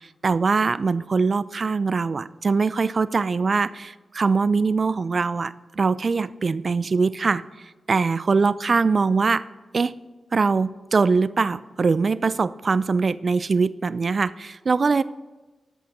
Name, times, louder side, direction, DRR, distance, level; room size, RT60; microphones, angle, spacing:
voice 1, 0.2-7.4 7.9-9.4 9.7-9.9 10.3-15.0, right 4 dB, 50° right, 17 dB, 0.3 m, -22 dB
11.5 x 6.1 x 5.3 m, 1.2 s
cardioid pair, 60°, 0 cm